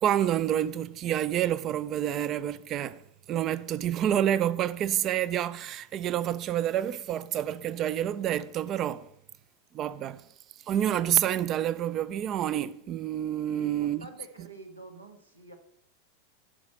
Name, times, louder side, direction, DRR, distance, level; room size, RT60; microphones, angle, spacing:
voice 1, 0.0-3.0 3.3-9.1 9.7-10.2 10.7-14.1, right 11 dB, 30° right, 0.5 m, -28 dB
voice 2, 13.5-15.5, right 2 dB, 85° right, 1.8 m, -47 dB
11.0 x 5.0 x 7.7 m
figure-of-eight pair, 90°, 0 cm